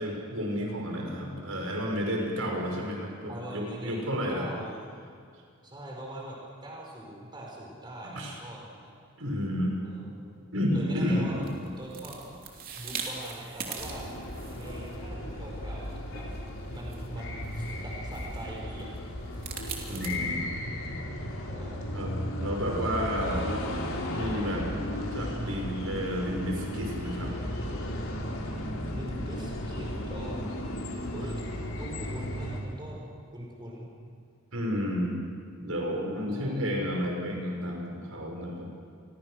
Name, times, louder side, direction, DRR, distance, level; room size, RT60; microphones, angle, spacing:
voice 1, 0.0-4.5 8.2-8.4 9.2-9.8 10.5-11.5 19.9-20.4 21.9-23.4 24.1-24.6 24.9-27.4 34.5-35.2 35.6-38.7, equal, 70° right, 0 dB, 5.8 m, -31 dB
voice 2, 3.3-4.9 5.6-8.9 9.8-10.5 10.7-12.3 12.7-14.1 14.5-16.3 16.7-18.9 19.8-20.4 21.5-22.0 22.8-22.9 23.2-23.8 24.4-24.5 28.9-30.5 31.1-31.4 31.8-33.0 33.3-33.9 36.3-36.6, right 1 dB, 20° right, -2 dB, 5.3 m, -42 dB
sound 1, 11.2-20.2, right 5 dB, 40° right, 3.2 m, -43 dB
sound 2, 13.8-32.6, left 1 dB, 65° left, 4.3 m, -35 dB
30.0 x 23.5 x 6.5 m, 2.2 s
head